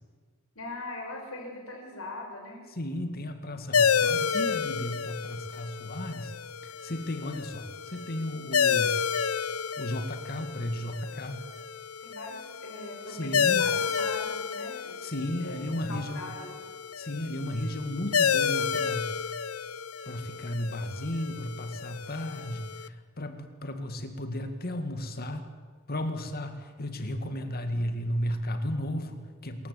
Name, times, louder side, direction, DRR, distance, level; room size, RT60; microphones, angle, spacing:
voice 1, 0.5-2.6 12.0-15.1 15.4-15.6 15.9-16.6, left 2 dB, 70° left, 1 dB, 6.1 m, -41 dB
voice 2, 2.7-6.4 6.6-9.0 9.8-11.5 13.1-13.7 15.0-16.3 17.0-19.3 20.1-25.5 25.9-29.7, left 1 dB, 45° left, 7 dB, 2.2 m, -34 dB
sound 1, 3.7-22.9, left 6 dB, 90° left, 0.7 m, -30 dB
26.5 x 14.5 x 8.5 m, 1.5 s
head